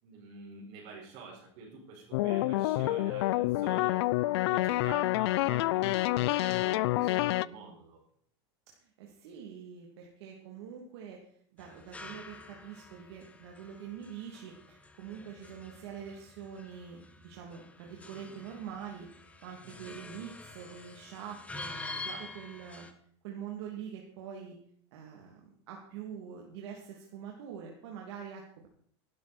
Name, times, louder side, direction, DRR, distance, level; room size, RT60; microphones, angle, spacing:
voice 1, 0.0-4.0 4.4-8.0 19.6-20.0 21.9-22.3, right 4 dB, 55° right, -6 dB, 5.5 m, -48 dB
sound 1, 2.1-7.5, left 18 dB, 75° left, 0.4 m, -28 dB
voice 2, 8.7-22.9 23.2-24.6 24.9-28.7, right 8 dB, 75° right, 0 dB, 2.7 m, -45 dB
sound 2, 11.6-22.9, left 3 dB, 10° left, 1.3 m, -47 dB
16.0 x 12.0 x 4.3 m, 0.62 s
supercardioid pair, 140°, 14 cm